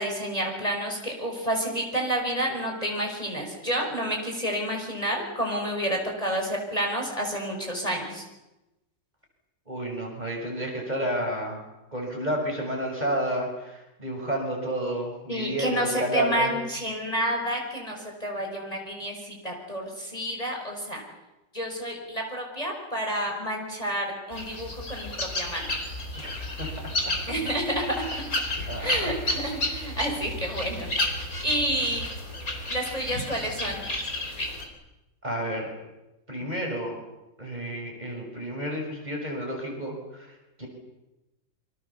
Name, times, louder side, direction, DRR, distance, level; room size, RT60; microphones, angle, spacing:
voice 1, 0.0-8.2 15.3-21.0 21.5-25.7 27.3-27.8 28.8-30.9 31.4-32.1 32.7-33.8, equal, 20° left, 1 dB, 5.7 m, -29 dB
voice 2, 9.7-11.6 11.9-16.6 26.2-26.7 27.0-27.1 28.7-29.1 35.2-35.7 36.3-37.0 37.4-40.7, right 1 dB, 20° right, 0 dB, 6.3 m, -31 dB
sound 1, 24.3-34.7, left 1 dB, 50° left, 4.9 m, -32 dB
27.5 x 25.5 x 7.1 m, 0.99 s
omnidirectional pair, 1.9 m